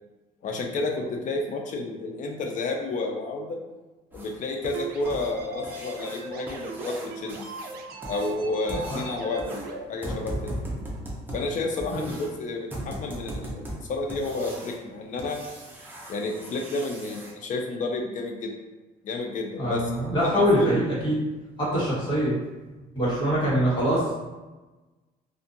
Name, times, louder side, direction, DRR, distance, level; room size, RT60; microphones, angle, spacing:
voice 1, 0.4-3.6 4.1-7.5 8.1-10.6 11.3-15.4 16.1-18.6 19.0-19.8 20.2-20.7, left 2 dB, 50° left, 2 dB, 0.5 m, -31 dB
sound 1, 4.1-17.3 19.6-19.7 20.2-20.3 20.7-20.8 21.3-21.4 21.9-22.0 22.4-22.5 23.0-23.1, right 1 dB, 10° right, 0.6 m, -39 dB
sound 2, 4.7-9.8, right 3 dB, 65° right, 0.4 m, -38 dB
voice 2, 8.7-9.0 11.9-12.0 19.6-21.2 21.6-22.3 22.9-24.1, equal, 30° left, -8 dB, 1.4 m, -24 dB
2.6 x 2.4 x 2.5 m, 1.2 s
cardioid pair, 110°, 17 cm